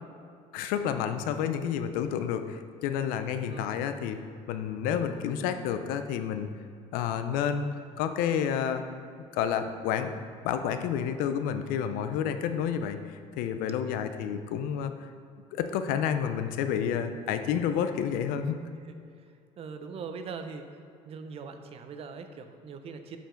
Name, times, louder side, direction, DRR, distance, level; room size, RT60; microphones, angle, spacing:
voice 1, 0.5-4.2 4.5-6.5 6.9-7.7 8.0-8.8 9.3-13.0 13.4-15.1 15.5-18.6, left 8 dB, 80° left, 9 dB, 0.5 m, -30 dB
voice 2, 3.5-3.8 19.6-20.6 21.1-23.2, right 5 dB, 40° right, 7 dB, 0.5 m, -41 dB
6.8 x 4.9 x 3.8 m, 2.4 s
cardioid pair, 120°, 15 cm